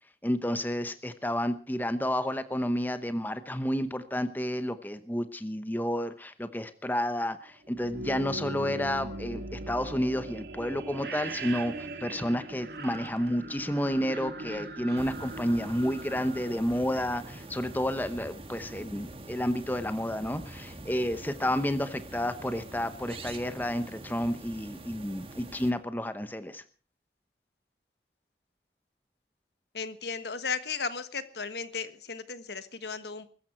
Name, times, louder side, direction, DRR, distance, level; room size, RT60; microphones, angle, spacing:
voice 1, 0.2-26.6, equal, 10° left, 11 dB, 0.9 m, -31 dB
sound 1, 7.7-17.5, right 2 dB, 65° right, 2.2 m, -40 dB
sound 2, 14.9-25.7, right 2 dB, 30° right, 1.8 m, -45 dB
voice 2, 29.7-33.3, left 5 dB, 75° left, 11 dB, 1.4 m, -35 dB
21.5 x 14.0 x 4.5 m, 0.39 s
head